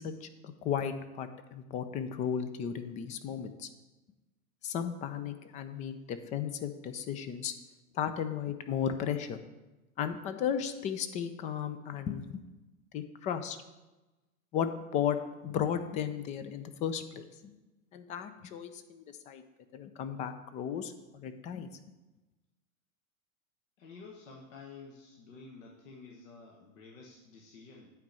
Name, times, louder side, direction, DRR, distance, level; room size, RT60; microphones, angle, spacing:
voice 1, 0.0-3.7 4.6-7.5 7.9-9.4 10.0-12.4 12.9-13.6 14.5-15.2 15.4-17.5 17.9-19.4 19.7-20.9 21.2-21.7, left 8 dB, 15° left, 10 dB, 0.4 m, -35 dB
voice 2, 23.8-27.9, left 4 dB, 60° left, 0 dB, 1.5 m, -51 dB
9.0 x 4.5 x 7.5 m, 1.1 s
hypercardioid pair, 105°, 44 cm